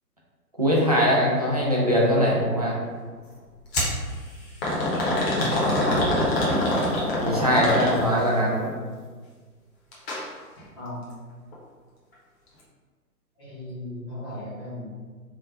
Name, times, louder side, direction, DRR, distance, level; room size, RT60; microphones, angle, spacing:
voice 1, 0.6-2.8 7.2-8.7, equal, 25° right, -5 dB, 0.4 m, -21 dB
sound 1, 3.7-4.0 4.6-8.3 9.9-10.2 10.6-10.7 11.5-11.6, left 1 dB, 40° left, 1.1 m, -24 dB
voice 2, 5.3-6.1 10.8-11.0 13.4-14.9, left 1 dB, 15° left, -10 dB, 0.7 m, -35 dB
3.3 x 2.3 x 3.9 m, 1.5 s
figure-of-eight pair, 130°, 48 cm